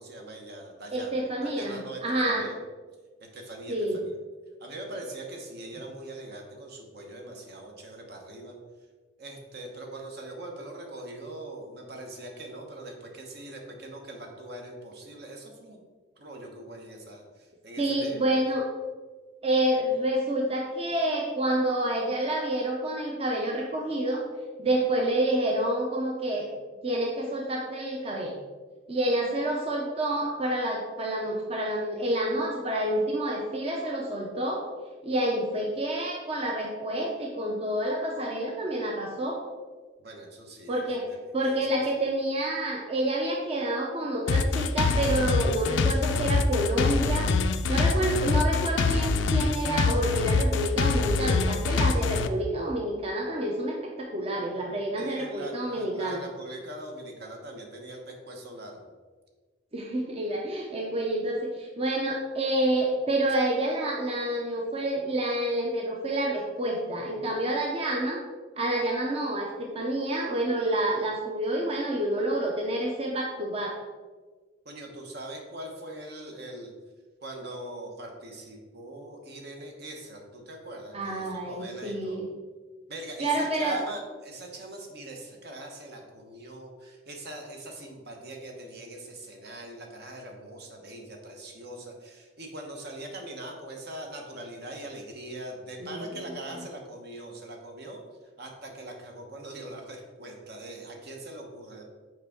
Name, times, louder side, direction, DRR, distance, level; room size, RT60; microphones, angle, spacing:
voice 1, 0.0-2.6 3.2-3.8 4.0-4.1 4.6-8.5 9.2-15.8 16.2-18.2 40.0-41.8 55.0-58.9 74.6-76.7 77.2-82.2 82.9-98.0 98.4-101.8, right 1 dB, 55° right, 2 dB, 1.0 m, -42 dB
voice 2, 0.9-2.5 3.7-4.0 17.8-18.7 19.4-24.2 24.6-26.5 26.8-28.3 28.9-34.7 35.0-39.4 40.7-41.1 41.3-47.3 47.7-56.2 59.7-68.2 68.6-73.7 80.9-82.3 83.2-83.8 95.8-96.6, right 1 dB, 30° right, -1 dB, 0.7 m, -28 dB
sound 1, 44.3-52.3, left 4 dB, 65° left, 0.4 m, -25 dB
6.4 x 4.5 x 3.6 m, 1.4 s
head